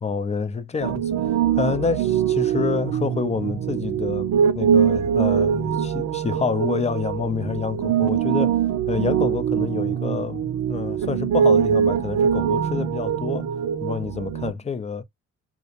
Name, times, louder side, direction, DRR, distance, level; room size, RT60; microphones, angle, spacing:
voice 1, 0.0-8.6 8.9-13.5 13.8-15.0, left 5 dB, 20° left, 0.4 m, -28 dB
Piano, 0.8-14.5, right 8 dB, 65° right, 0.5 m, -23 dB
2.5 x 2.1 x 2.7 m
cardioid pair, 90°, 30 cm